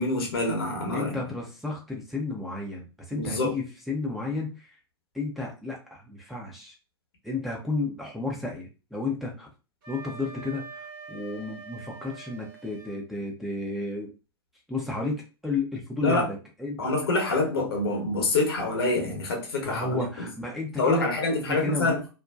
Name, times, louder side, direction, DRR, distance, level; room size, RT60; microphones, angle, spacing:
voice 1, 0.0-1.2 3.1-3.6 16.0-16.3 16.8-20.3 20.8-22.0, left 2 dB, 65° left, 0.9 m, -26 dB
voice 2, 0.9-4.8 5.1-6.7 7.2-9.5 9.9-14.1 14.7-16.8 19.6-22.1, left 3 dB, ahead, 0.5 m, -32 dB
Wind instrument woodwind instrument, 9.8-13.0, right 4 dB, 55° right, 0.9 m, -44 dB
2.6 x 2.1 x 2.3 m
figure-of-eight pair, 95°, 14 cm